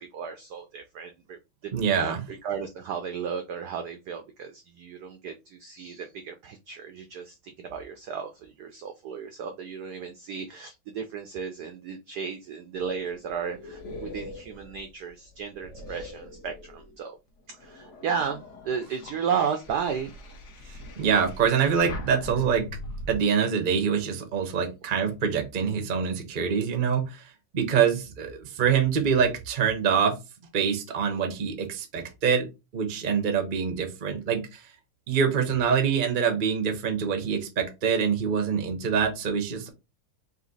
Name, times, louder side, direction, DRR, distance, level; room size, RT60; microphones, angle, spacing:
voice 1, 0.0-17.2 17.5-20.1, right 7 dB, 80° right, 0.9 m, -34 dB
voice 2, 1.7-2.3 21.0-22.7 23.1-30.2 30.5-32.5 32.7-34.7 35.1-39.7, right 7 dB, 65° right, 0.5 m, -25 dB
sound 1, 12.7-17.0 17.5-23.1, left 2 dB, 60° left, 0.7 m, -42 dB
4.1 x 2.8 x 3.9 m
omnidirectional pair, 2.4 m